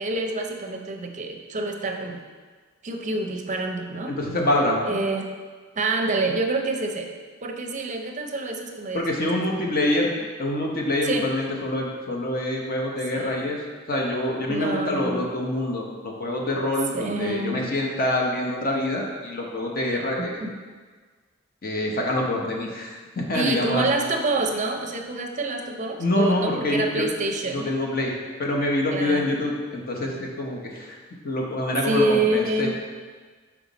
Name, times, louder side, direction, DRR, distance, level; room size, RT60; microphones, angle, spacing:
voice 1, 0.0-2.2 2.8-4.1 4.8-5.3 5.7-7.1 7.4-9.0 11.0-11.3 13.2-13.4 14.5-15.2 16.9-17.6 20.4-20.5 23.3-27.7 28.9-29.4 31.8-32.8, right 2 dB, 35° right, 3 dB, 0.5 m, -27 dB
voice 2, 4.1-4.8 8.9-10.1 10.4-13.6 13.9-20.4 21.6-23.8 26.0-27.1 27.4-28.1 28.4-31.0 31.2-32.7, left 1 dB, 45° left, -1 dB, 0.8 m, -26 dB
5.6 x 4.5 x 4.0 m, 1.5 s
head